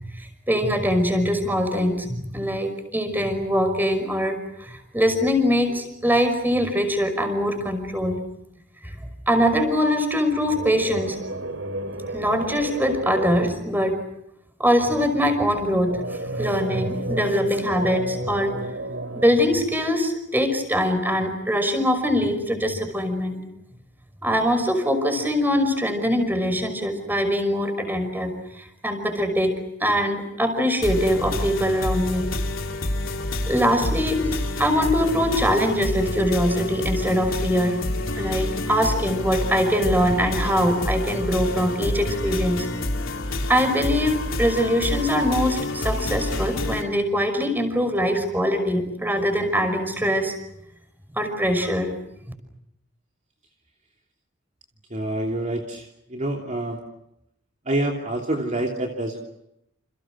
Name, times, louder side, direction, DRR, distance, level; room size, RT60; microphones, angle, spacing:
voice 1, 0.0-8.2 8.8-11.2 12.1-14.0 14.6-16.0 16.4-18.5 19.1-23.4 24.2-29.5 29.8-32.3 33.5-37.8 38.2-42.7 43.5-50.3 51.1-51.9, equal, 10° right, 8 dB, 5.5 m, -23 dB
sound 1, 10.5-13.5 15.9-19.3, right 2 dB, 70° right, 2.7 m, -31 dB
sound 2, 30.8-46.8, left 1 dB, 75° left, 3.5 m, -28 dB
voice 2, 54.9-56.8 57.6-59.2, right 1 dB, 35° right, 1 dB, 3.0 m, -27 dB
29.0 x 29.0 x 6.3 m, 0.81 s
head